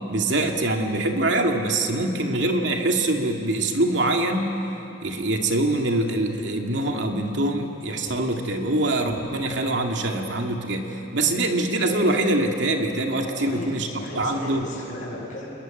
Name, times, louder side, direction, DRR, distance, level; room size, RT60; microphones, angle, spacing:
voice 1, 0.1-4.5 5.0-13.9 14.1-14.6, right 2 dB, 70° right, 2 dB, 2.4 m, -24 dB
voice 2, 13.3-15.5, left 1 dB, 40° left, -6 dB, 7.5 m, -36 dB
28.0 x 22.0 x 9.1 m, 2.9 s
head